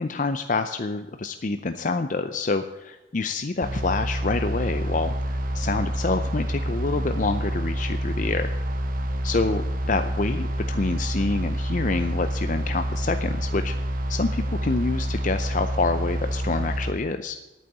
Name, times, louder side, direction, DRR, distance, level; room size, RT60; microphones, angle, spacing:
voice 1, 0.0-8.5 9.2-13.7 14.1-17.4, left 3 dB, 40° left, 8 dB, 0.5 m, -27 dB
sound 1, 3.6-16.9, right 1 dB, 45° right, 1.1 m, -28 dB
10.5 x 9.1 x 6.7 m, 1.1 s
head